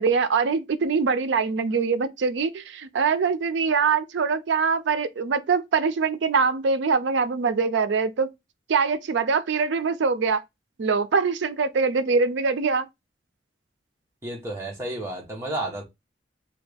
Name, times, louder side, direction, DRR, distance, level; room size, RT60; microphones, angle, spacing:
voice 1, 0.0-8.3 8.7-10.4 10.8-12.9, right 5 dB, 75° right, 0.4 m, -23 dB
voice 2, 14.2-15.8, right 1 dB, 15° right, 0.9 m, -31 dB
3.2 x 2.3 x 3.3 m
head